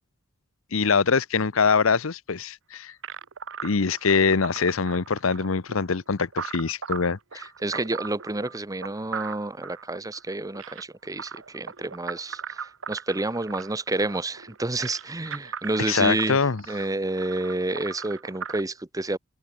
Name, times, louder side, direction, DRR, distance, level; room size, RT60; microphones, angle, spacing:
voice 1, 0.7-2.9 3.6-7.4 15.9-16.6, left 5 dB, 75° left, 0.8 m, -23 dB
sound 1, 3.0-18.6, right 6 dB, 70° right, 1.3 m, -38 dB
voice 2, 7.3-19.2, right 2 dB, 15° right, 0.9 m, -29 dB
open air
head